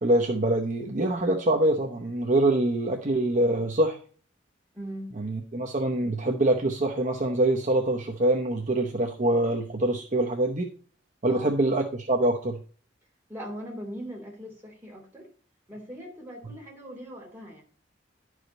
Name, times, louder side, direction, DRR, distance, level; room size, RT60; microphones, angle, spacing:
voice 1, 0.0-4.0 5.2-10.7 11.2-12.6, right 1 dB, 45° right, 0.9 m, -25 dB
voice 2, 4.7-5.2 11.3-11.6 13.3-15.3 15.7-17.6, equal, 10° right, 2.9 m, -40 dB
11.0 x 5.0 x 3.9 m
head